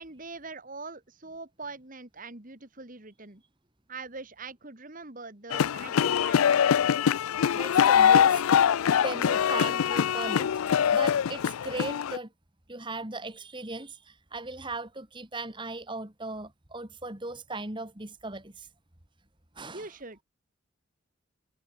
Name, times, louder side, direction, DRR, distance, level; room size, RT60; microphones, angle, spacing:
voice 1, 0.0-3.4 3.9-6.6 19.7-20.2, right 3 dB, 40° right, 2.2 m, -43 dB
sound 1, 5.5-12.2, left 8 dB, 90° left, 0.4 m, -23 dB
voice 2, 7.5-8.4 9.0-10.5 10.9-12.3 12.7-18.7 19.6-19.9, right 2 dB, 25° right, 2.2 m, -38 dB
head